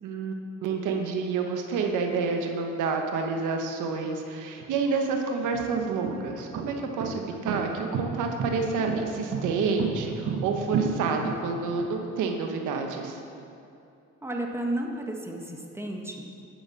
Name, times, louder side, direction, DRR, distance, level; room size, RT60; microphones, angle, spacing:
voice 1, 0.0-13.2, right 4 dB, 85° right, 3 dB, 1.2 m, -29 dB
sound 1, 4.6-4.7 5.4-11.9, right 6 dB, 70° right, 1.3 m, -31 dB
voice 2, 14.2-16.5, right 1 dB, 10° right, 1 dB, 1.5 m, -33 dB
10.5 x 7.3 x 7.2 m, 2.6 s
cardioid pair, 90°, 30 cm